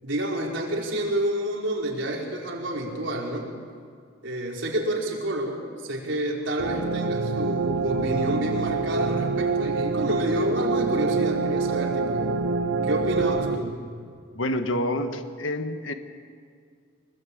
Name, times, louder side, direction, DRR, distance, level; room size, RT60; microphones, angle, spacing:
voice 1, 0.0-3.5 4.2-12.4 12.8-13.8, right 1 dB, 70° right, -1 dB, 4.7 m, -29 dB
sound 1, 6.6-13.6, right 4 dB, 90° right, 1.3 m, -26 dB
voice 2, 14.3-15.9, left 1 dB, 85° left, 7 dB, 1.5 m, -28 dB
25.0 x 20.5 x 8.7 m, 2.1 s
head